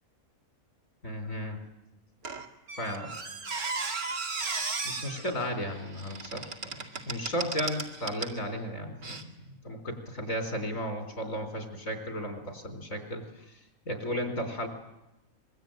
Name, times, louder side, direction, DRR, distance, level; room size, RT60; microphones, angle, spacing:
voice 1, 1.0-1.6 2.8-3.1 4.8-6.7 7.0-9.3 9.6-13.2 13.9-14.7, equal, 65° left, 5 dB, 4.9 m, -34 dB
Squeak, 2.2-8.4 9.0-9.2, right 4 dB, 90° right, 2.7 m, -36 dB
25.5 x 22.5 x 9.2 m, 0.92 s
omnidirectional pair, 1.5 m